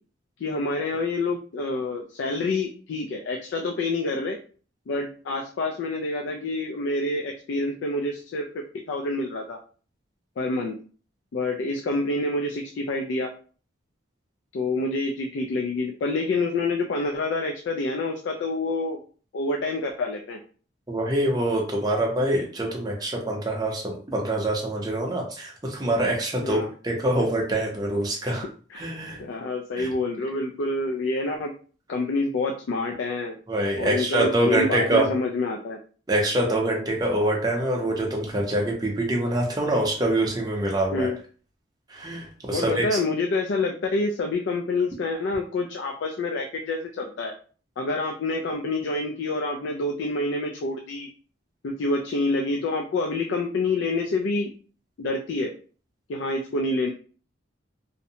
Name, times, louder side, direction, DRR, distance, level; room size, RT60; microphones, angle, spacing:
voice 1, 0.4-4.4 4.9-9.6 10.4-10.8 11.3-13.3 14.5-19.0 19.3-20.4 26.4-26.7 28.2-28.4 28.7-28.9 29.2-31.5 31.9-33.4 33.8-35.8 40.9-41.2 42.5-47.3 47.8-51.1 51.6-54.5 55.0-55.5 56.1-56.9, left 2 dB, 70° left, 2 dB, 0.3 m, -27 dB
voice 2, 20.9-28.5 28.8-29.2 29.8-29.9 33.5-35.1 36.1-41.1 41.9-43.0, right 1 dB, 20° right, -1 dB, 0.5 m, -25 dB
2.6 x 2.0 x 2.7 m, 0.41 s
head